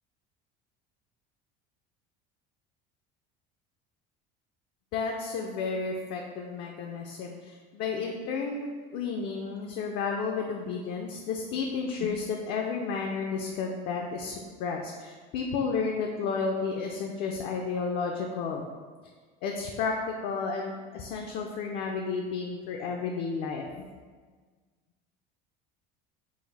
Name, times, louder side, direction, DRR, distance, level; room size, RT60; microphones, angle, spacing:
voice 1, 4.9-18.7 19.4-20.0 20.2-23.7, left 5 dB, 60° left, 1 dB, 0.4 m, -32 dB
3.9 x 2.4 x 4.0 m, 1.5 s
cardioid pair, 140°, 19 cm